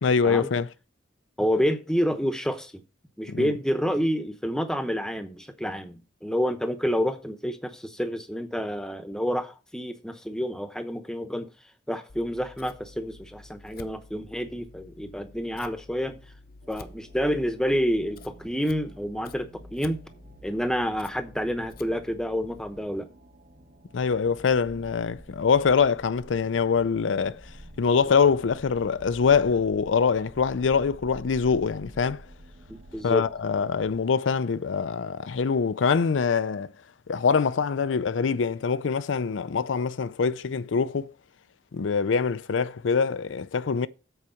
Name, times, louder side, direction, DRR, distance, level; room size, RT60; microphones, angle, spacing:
voice 1, 0.0-0.7 3.3-3.5 23.9-27.4 27.8-32.2 33.0-36.7 37.1-41.1 41.7-43.9, left 5 dB, 90° left, 0.5 m, -24 dB
voice 2, 1.4-2.7 3.2-11.5 11.9-16.2 16.7-20.0 20.4-23.1 32.7-33.2, equal, 5° left, 0.8 m, -28 dB
Scissors, 12.1-22.8, left 3 dB, 50° left, 0.7 m, -50 dB
sound 1, 16.6-34.0, equal, 55° right, 1.2 m, -49 dB
7.9 x 4.7 x 7.0 m
head